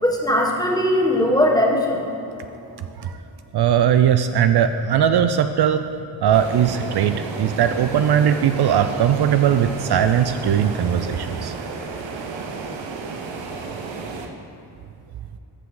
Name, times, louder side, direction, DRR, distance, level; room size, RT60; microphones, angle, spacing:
voice 1, 0.0-2.2, left 1 dB, 10° left, -1 dB, 1.6 m, -19 dB
voice 2, 3.5-5.9 6.2-11.5, right 9 dB, 60° right, 9 dB, 0.5 m, -19 dB
sound 1, 6.3-14.3, right 4 dB, 85° right, 0.9 m, -32 dB
13.5 x 5.8 x 3.8 m, 2.8 s
cardioid pair, 60°, 44 cm